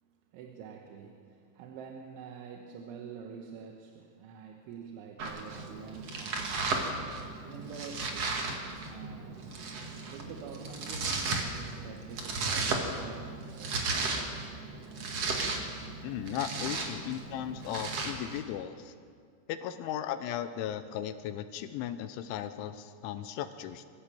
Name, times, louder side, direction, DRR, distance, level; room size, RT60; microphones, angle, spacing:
voice 1, 0.0-9.7 10.1-14.4 16.4-17.2 17.7-18.4, right 6 dB, 75° right, 2 dB, 3.4 m, -48 dB
Domestic sounds home sounds, 5.2-18.4, right 3 dB, 55° right, 1.8 m, -35 dB
voice 2, 16.0-18.9 19.5-23.9, left 10 dB, 80° left, 10 dB, 3.0 m, -36 dB
24.5 x 15.0 x 7.8 m, 2.2 s
omnidirectional pair, 5.9 m